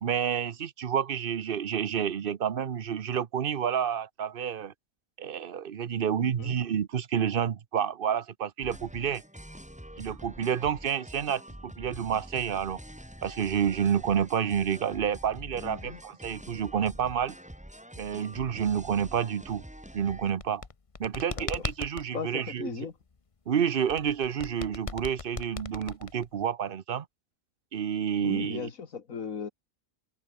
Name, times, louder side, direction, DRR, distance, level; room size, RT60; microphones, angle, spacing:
voice 1, 0.0-4.7 5.2-9.2 10.0-12.8 13.2-17.3 18.0-19.6 19.9-20.6 21.0-22.7 23.5-27.1 27.7-28.7, right 8 dB, 45° right, 0.9 m, -29 dB
voice 2, 6.2-6.6 15.6-16.0 21.3-21.7 22.1-22.9 28.2-29.5, left 6 dB, 75° left, 2.2 m, -37 dB
sound 1, 8.6-20.3, equal, 5° right, 2.9 m, -46 dB
sound 2, 20.3-22.1 23.9-26.5, left 4 dB, 30° left, 0.9 m, -37 dB
open air
omnidirectional pair, 1.4 m